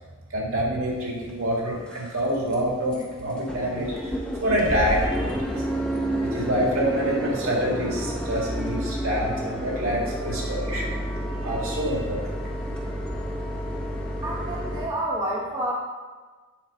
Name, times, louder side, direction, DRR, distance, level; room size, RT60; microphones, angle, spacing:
voice 1, 0.3-5.6 6.2-10.9 11.4-12.2, right 1 dB, 80° right, -2 dB, 1.8 m, -27 dB
sound 1, 1.2-1.3 1.8-2.2 2.5-2.6 2.9-3.0 3.3-14.9, equal, 5° left, 0.6 m, -30 dB
voice 2, 14.2-15.7, right 1 dB, 20° right, -6 dB, 1.3 m, -29 dB
7.2 x 3.9 x 5.4 m, 1.4 s
head